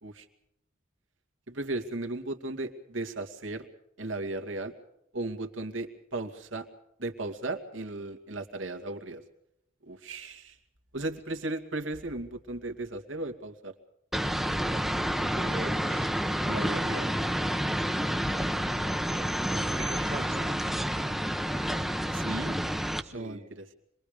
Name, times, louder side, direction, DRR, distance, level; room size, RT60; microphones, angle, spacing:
voice 1, 1.5-3.7 4.0-4.7 5.1-6.7 7.0-9.2 9.9-10.6 10.9-13.7 16.4-17.1 19.5-20.1 22.1-22.6 23.1-23.7, right 2 dB, 80° right, 5 dB, 2.5 m, -36 dB
sound 1, 14.1-23.0, equal, ahead, 1.0 m, -29 dB
voice 2, 15.3-16.1 19.7-20.6 23.0-23.6, right 1 dB, 35° right, 7 dB, 1.6 m, -41 dB
26.5 x 21.5 x 5.2 m, 0.79 s
head